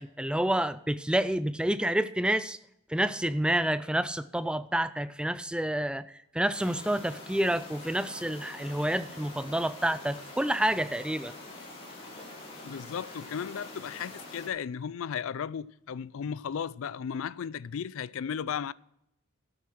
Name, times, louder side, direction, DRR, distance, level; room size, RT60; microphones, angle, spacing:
voice 1, 0.0-2.6 2.9-6.1 6.3-11.3, right 1 dB, 5° right, 0.3 m, -28 dB
sound 1, 6.5-14.5, left 2 dB, 25° left, 3.2 m, -45 dB
voice 2, 12.6-18.7, left 7 dB, 70° left, 0.4 m, -35 dB
13.0 x 8.3 x 6.0 m
head